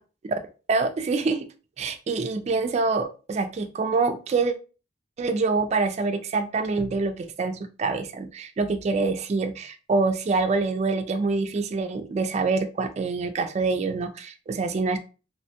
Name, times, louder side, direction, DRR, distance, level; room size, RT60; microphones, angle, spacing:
voice 1, 0.7-1.5 1.8-4.5 5.2-15.0, right 3 dB, 35° right, 7 dB, 0.3 m, -26 dB
2.9 x 2.2 x 2.7 m, 0.34 s
head